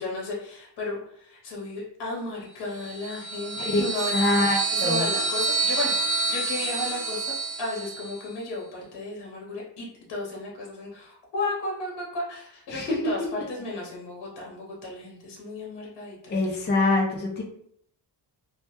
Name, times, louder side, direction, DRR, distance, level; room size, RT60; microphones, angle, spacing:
voice 1, 0.0-4.4 4.7-7.3 7.6-16.6, left 2 dB, 75° left, -2 dB, 0.9 m, -34 dB
sound 1, 2.8-8.2, right 3 dB, 60° right, 0.6 m, -28 dB
voice 2, 4.1-5.1 12.7-13.0 16.3-17.4, left 2 dB, 25° left, -1 dB, 0.4 m, -24 dB
2.2 x 2.1 x 2.8 m, 0.68 s
wide cardioid pair, 150°, 42 cm